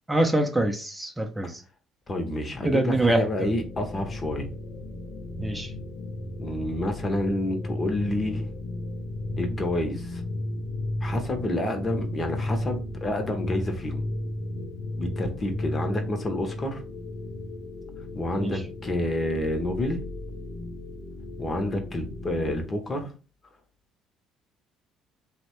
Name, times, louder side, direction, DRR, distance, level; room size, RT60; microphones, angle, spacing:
voice 1, 0.1-1.6 2.6-3.5 5.4-5.7 18.4-18.6, right 2 dB, 15° right, 0.5 m, -25 dB
voice 2, 2.1-4.5 6.4-8.5 9.3-10.2 11.0-14.0 15.0-16.8 18.2-20.0 21.4-23.1, left 1 dB, 35° left, 0.7 m, -29 dB
sound 1, 2.9-22.7, left 1 dB, 75° left, 0.5 m, -35 dB
3.0 x 2.1 x 2.9 m
supercardioid pair, 70°, 0 cm